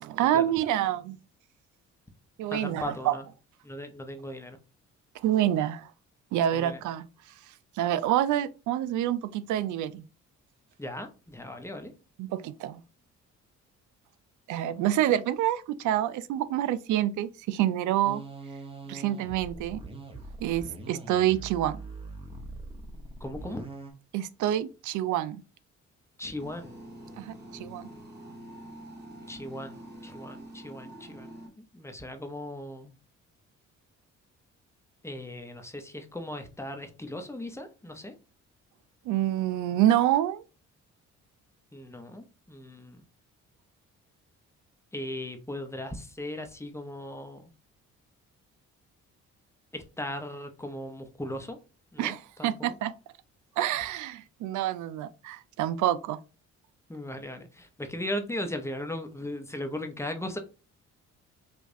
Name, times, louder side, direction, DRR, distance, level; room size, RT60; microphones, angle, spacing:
voice 1, 0.0-1.2 2.4-3.2 5.2-5.9 6.3-7.1 7.8-10.0 12.2-12.8 14.5-18.2 18.9-19.8 20.4-21.8 24.1-25.4 27.2-27.9 39.1-40.4 52.0-52.9 53.6-56.2, right 12 dB, 75° right, 0.4 m, -27 dB
voice 2, 2.5-3.2 3.6-4.6 6.5-6.8 10.8-11.9 23.2-23.6 26.2-26.8 29.3-32.9 35.0-38.1 41.7-43.0 44.9-47.5 49.7-51.6 51.9-52.8 56.9-60.4, left 1 dB, 10° left, 0.7 m, -38 dB
sound 1, 18.0-23.9, right 3 dB, 20° right, 0.9 m, -42 dB
sound 2, 26.4-31.5, right 1 dB, 35° right, 1.7 m, -46 dB
5.0 x 2.4 x 2.6 m
cardioid pair, 90°, 30 cm